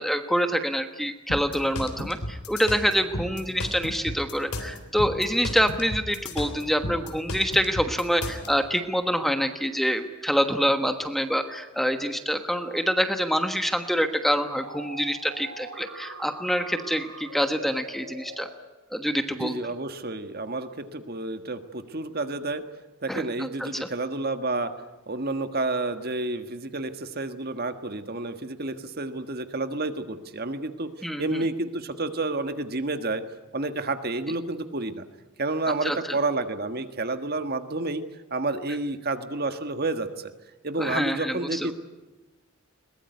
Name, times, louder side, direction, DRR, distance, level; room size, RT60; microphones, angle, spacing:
voice 1, 0.0-18.5 18.9-19.5 23.1-23.2 23.6-23.7 31.0-31.4 35.8-36.2 40.8-41.7, equal, ahead, 7 dB, 1.2 m, -26 dB
sound 1, 1.3-8.5, left 1 dB, 90° left, 3.6 m, -33 dB
sound 2, 14.6-18.5, right 2 dB, 80° right, 4.2 m, -42 dB
voice 2, 19.3-22.6 23.0-24.7 25.1-30.9 31.2-33.2 33.5-35.0 35.4-38.0 38.3-40.3 40.6-41.7, right 2 dB, 45° right, 9 dB, 1.6 m, -30 dB
22.0 x 20.0 x 9.6 m, 1.1 s
head